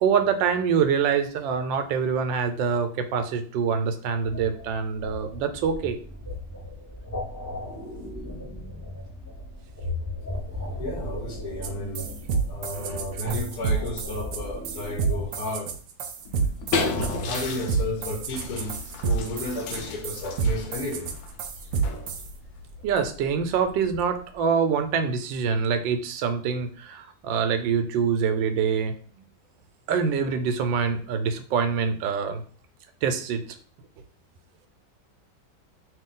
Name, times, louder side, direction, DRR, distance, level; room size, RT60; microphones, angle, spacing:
voice 1, 0.0-6.0 12.7-13.3 22.8-28.9 29.9-32.4 33.0-33.4, right 6 dB, 90° right, 8 dB, 1.3 m, -25 dB
sound 1, 4.2-15.3, left 1 dB, 10° left, 0.7 m, -36 dB
voice 2, 10.8-12.1 12.5-15.7 16.7-18.7 19.0-21.1 21.6-21.7, left 1 dB, 65° left, 2 dB, 1.3 m, -33 dB
sound 2, 11.6-11.7 11.9-22.3, right 5 dB, 70° right, 0.8 m, -28 dB
sound 3, 16.2-24.3, left 3 dB, 85° left, 1.3 m, -34 dB
3.0 x 3.0 x 3.7 m, 0.43 s
omnidirectional pair, 2.0 m